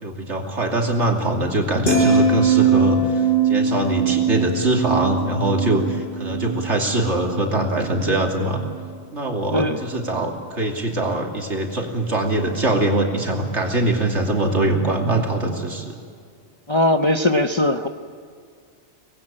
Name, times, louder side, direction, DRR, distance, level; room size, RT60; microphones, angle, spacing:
voice 1, 0.0-8.6 9.1-15.9, right 2 dB, 70° right, 1 dB, 3.2 m, -22 dB
sound 1, 1.8-8.1 8.5-8.8, right 4 dB, 55° left, 7.1 m, -21 dB
voice 2, 16.7-17.9, left 1 dB, 25° left, 6 dB, 0.8 m, -19 dB
25.0 x 19.5 x 8.8 m, 2.2 s
omnidirectional pair, 1.2 m